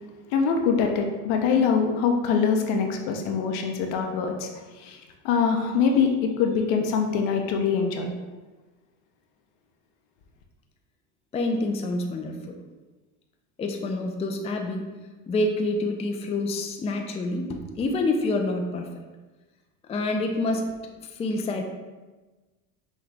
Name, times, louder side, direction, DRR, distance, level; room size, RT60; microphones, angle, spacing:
voice 1, 0.3-4.5 4.8-5.0 5.2-8.1, left 6 dB, 70° left, 3 dB, 0.8 m, -23 dB
voice 2, 11.3-12.5 13.6-14.9 15.3-18.8 19.9-20.7 21.2-21.6, left 2 dB, 15° left, 3 dB, 0.4 m, -27 dB
5.7 x 2.3 x 3.4 m, 1.2 s
supercardioid pair, 95°, 38 cm